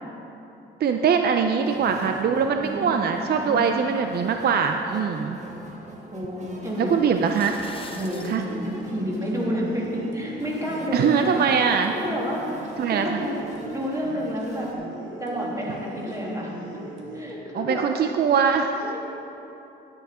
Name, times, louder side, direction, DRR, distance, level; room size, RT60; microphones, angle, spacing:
voice 1, 0.8-5.4 6.8-7.6 8.3-8.4 10.9-11.9 12.8-13.2 17.5-18.9, right 6 dB, 55° right, 5 dB, 0.6 m, -22 dB
sound 1, 1.6-14.7, right 1 dB, 35° right, 1.6 m, -45 dB
voice 2, 2.4-4.2 5.0-5.1 5.5-5.6 6.1-7.2 7.9-8.3 8.6-11.3 11.9-12.4 12.8-13.4 13.7-14.7 15.2-16.5 17.1-17.8 18.7-19.0, equal, 15° right, -4 dB, 2.7 m, -30 dB
sound 2, 7.1-8.4, left 3 dB, 25° left, 1.0 m, -41 dB
sound 3, 8.0-17.3, right 1 dB, 75° right, 1.5 m, -39 dB
9.6 x 9.5 x 5.0 m, 2.9 s
cardioid pair, 90°, 20 cm